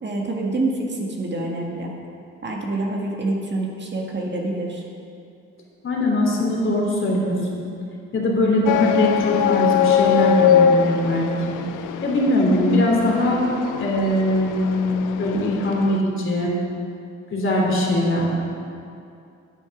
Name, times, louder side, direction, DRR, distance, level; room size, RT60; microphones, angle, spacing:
voice 1, 0.0-1.9 2.4-4.8, right 2 dB, 35° right, -1 dB, 1.7 m, -26 dB
voice 2, 5.8-7.6 8.1-11.6 12.0-13.5 13.8-16.5 17.3-18.3, left 1 dB, 40° left, -2 dB, 3.0 m, -21 dB
sound 1, 8.7-16.0, left 8 dB, 85° left, 0.6 m, -22 dB
9.1 x 9.0 x 6.0 m, 2.5 s
cardioid pair, 90°, 30 cm